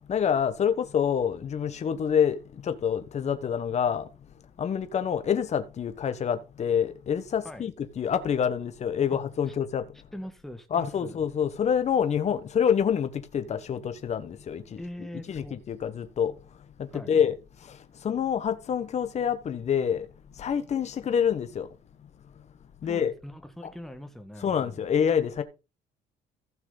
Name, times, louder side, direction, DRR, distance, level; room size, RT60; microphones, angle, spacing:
voice 1, 0.1-2.4 2.6-4.0 4.6-9.8 10.7-14.8 15.3-16.3 16.9-17.3 18.0-20.1 20.4-21.7 22.8-23.1 24.4-25.4, left 8 dB, 40° left, 1.3 m, -26 dB
voice 2, 10.1-11.2 14.8-15.6 16.9-17.1 22.9-24.8, equal, ahead, 1.6 m, -42 dB
15.0 x 6.1 x 3.9 m
cardioid pair, 110°, 17 cm